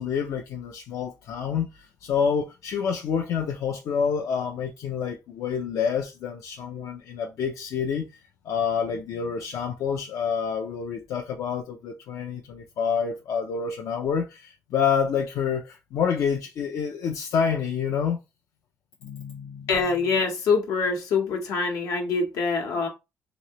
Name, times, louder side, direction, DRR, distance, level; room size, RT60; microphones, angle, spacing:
voice 1, 0.0-8.1 8.4-18.2 19.0-19.7, left 7 dB, 70° left, 0.5 m, -28 dB
voice 2, 19.7-22.9, left 4 dB, 85° left, 1.0 m, -24 dB
3.1 x 2.7 x 2.9 m
cardioid pair, 110°, 6 cm